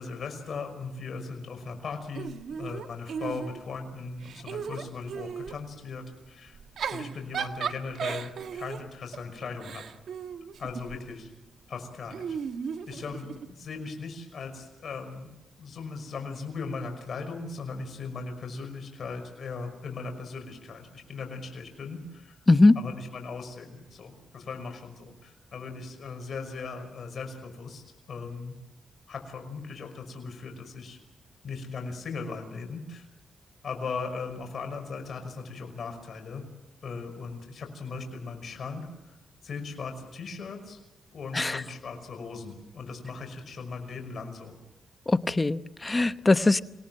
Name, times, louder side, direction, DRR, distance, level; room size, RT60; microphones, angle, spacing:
voice 1, 0.0-6.6 6.9-9.8 10.6-11.3 11.7-12.4 12.9-15.3 15.6-22.4 22.8-27.8 28.1-28.6 29.1-31.0 31.4-33.1 33.6-36.4 36.8-39.2 39.4-40.8 41.1-44.6, left 4 dB, 60° left, 5 dB, 5.8 m, -38 dB
Giggle / Chuckle chortle, 2.1-3.8 4.2-5.6 6.5-11.0 12.1-13.5, right 7 dB, 75° right, 1.5 m, -36 dB
voice 2, 22.5-22.8 41.3-41.6 45.1-46.6, left 2 dB, 25° left, 12 dB, 0.9 m, -21 dB
27.5 x 18.5 x 7.8 m, 0.97 s
cardioid pair, 70°, 0 cm